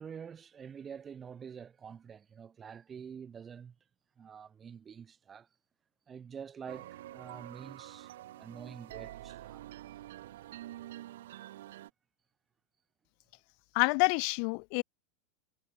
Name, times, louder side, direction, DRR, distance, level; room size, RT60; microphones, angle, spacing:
voice 1, 0.0-3.8 4.2-5.5 6.1-9.6, right 7 dB, 20° right, 1.5 m, -47 dB
sound 1, 6.7-11.9, right 14 dB, 85° right, 4.9 m, -47 dB
voice 2, 13.7-14.8, left 40 dB or more, 55° left, 0.8 m, -27 dB
supercardioid pair, 145°, 0 cm